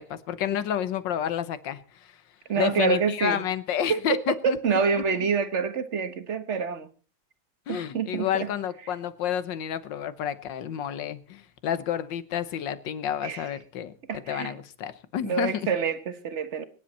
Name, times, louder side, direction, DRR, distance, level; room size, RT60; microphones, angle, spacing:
voice 1, 0.0-1.8 2.5-4.8 7.7-15.7, left 10 dB, 90° left, 1.7 m, -30 dB
voice 2, 2.5-3.4 3.9-6.9 7.7-8.5 13.2-13.5 14.1-14.5 15.2-16.6, right 6 dB, 45° right, 1.4 m, -27 dB
24.0 x 10.5 x 4.2 m
omnidirectional pair, 1.9 m